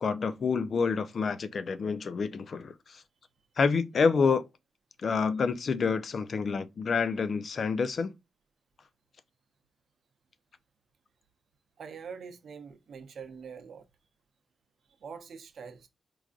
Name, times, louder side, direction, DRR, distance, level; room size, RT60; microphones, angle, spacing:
voice 1, 0.0-3.0 3.6-4.4 5.0-8.1, left 5 dB, 55° left, 0.4 m, -28 dB
voice 2, 11.8-13.9 15.0-15.9, right 6 dB, 75° right, 0.6 m, -44 dB
4.6 x 2.5 x 2.4 m
wide cardioid pair, 120°, 0 cm